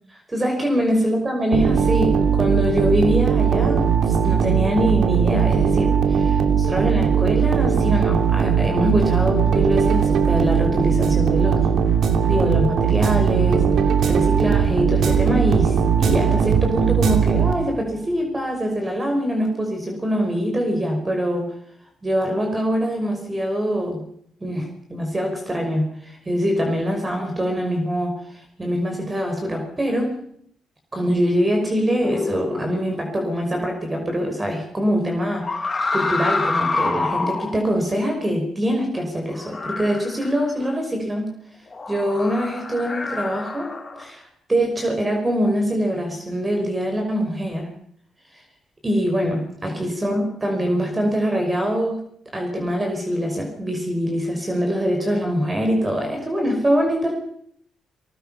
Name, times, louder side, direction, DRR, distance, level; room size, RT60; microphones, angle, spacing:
voice 1, 0.1-11.6 12.3-13.7 14.0-21.5 22.0-24.1 24.4-30.1 30.9-35.5 35.9-41.3 41.9-43.7 44.0-47.7 48.8-52.0 52.3-57.1, equal, 20° right, 3 dB, 5.6 m, -23 dB
sound 1, 1.5-18.0, right 7 dB, 65° right, 2.8 m, -19 dB
sound 2, 32.0-33.0 35.4-37.6 39.3-40.6 41.7-44.0, left 3 dB, 25° left, 5.5 m, -27 dB
29.5 x 20.5 x 5.8 m, 0.66 s
cardioid pair, 90°, 0 cm